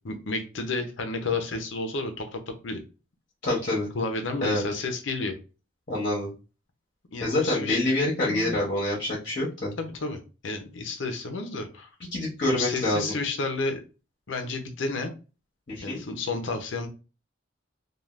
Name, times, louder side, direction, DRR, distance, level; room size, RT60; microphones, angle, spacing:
voice 1, 0.0-2.8 3.9-5.3 7.1-7.8 8.3-8.6 9.8-10.2 10.4-11.9 12.5-13.8 14.3-15.1 15.8-16.9, left 3 dB, 70° left, 5 dB, 0.6 m, -31 dB
voice 2, 3.4-3.9 4.4-4.8 5.9-6.3 7.2-9.7 12.1-13.1 15.7-16.0, left 1 dB, 45° left, -4 dB, 0.9 m, -26 dB
3.2 x 2.4 x 2.4 m, 0.32 s
head